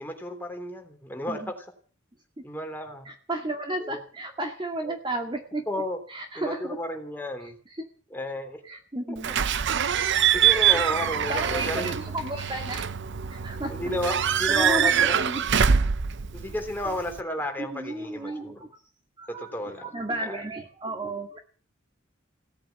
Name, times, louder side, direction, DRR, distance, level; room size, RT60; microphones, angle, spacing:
voice 1, 0.0-1.5 2.4-3.0 3.8-4.0 4.8-5.0 5.7-6.0 6.3-7.5 8.1-8.6 9.1-9.2 10.1-12.0 13.7-15.3 16.3-18.6 19.3-19.9 20.2-20.4, left 1 dB, 10° left, 4 dB, 3.4 m, -33 dB
voice 2, 3.1-5.7 6.1-6.8 7.8-7.9 8.7-9.3 11.3-12.9 13.3-13.7 14.2-15.4 17.6-18.8 19.2-19.5 19.8-21.4, right 1 dB, 25° right, 4 dB, 2.0 m, -33 dB
Slam / Squeak / Alarm, 9.2-17.2, right 8 dB, 60° right, 0.8 m, -24 dB
17.5 x 8.8 x 9.4 m, 0.42 s
head